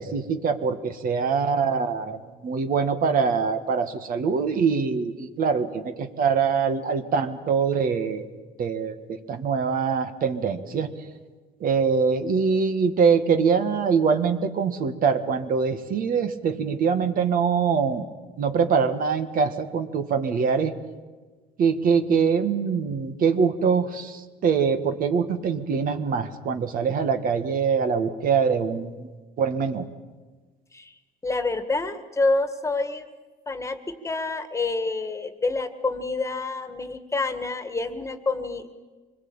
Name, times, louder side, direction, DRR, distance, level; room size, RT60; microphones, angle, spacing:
voice 1, 0.0-8.3 8.6-10.9 11.6-18.0 18.4-20.7 21.6-29.1 29.4-29.8, right 6 dB, 55° right, 8 dB, 1.8 m, -23 dB
voice 2, 31.2-33.1 33.5-33.8 34.0-38.7, left 3 dB, 15° left, 9 dB, 1.9 m, -27 dB
25.0 x 21.0 x 8.9 m, 1.3 s
cardioid pair, 110°, 17 cm